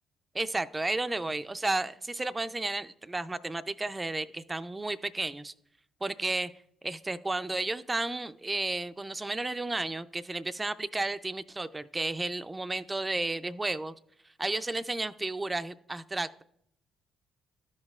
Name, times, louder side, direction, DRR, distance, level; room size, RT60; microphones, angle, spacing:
voice 1, 0.3-5.5 6.0-6.5 6.8-13.9 14.4-16.4, right 2 dB, 20° right, 13 dB, 0.4 m, -32 dB
13.5 x 5.4 x 2.4 m, 0.73 s
hypercardioid pair, 50°, 0 cm